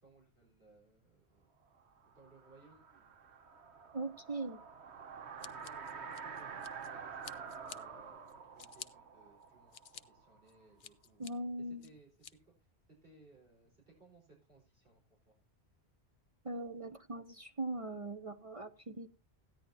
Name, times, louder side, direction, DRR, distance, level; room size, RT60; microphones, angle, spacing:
voice 1, 0.0-1.5 2.1-3.0 5.3-11.2 11.6-15.3, right 2 dB, 55° right, -3 dB, 4.8 m, -63 dB
sound 1, 1.8-10.6, right 6 dB, 80° right, 1.3 m, -48 dB
voice 2, 3.9-4.6 11.2-11.9 16.4-19.1, right 2 dB, 35° right, 8 dB, 0.7 m, -40 dB
Scissors, 5.4-6.9 7.2-7.8 8.3-8.9 9.4-10.0 10.5-11.3 11.8-12.3, left 8 dB, 55° left, 0.8 m, -50 dB
15.0 x 10.0 x 2.7 m, 0.26 s
omnidirectional pair, 1.1 m